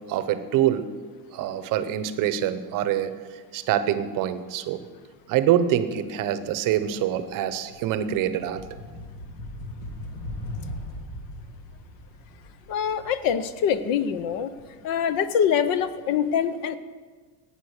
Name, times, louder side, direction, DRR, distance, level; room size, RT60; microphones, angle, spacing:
voice 1, 0.1-0.8 1.3-3.1 3.5-4.8 5.3-8.6, right 11 dB, 40° right, 12 dB, 0.8 m, -25 dB
sound 1, 6.0-6.2 6.6-15.4, left 1 dB, 65° left, 2.8 m, -40 dB
voice 2, 12.7-14.5 14.8-16.8, left 8 dB, 45° left, 14 dB, 0.7 m, -24 dB
15.5 x 9.1 x 6.5 m, 1.5 s
cardioid pair, 165°, 49 cm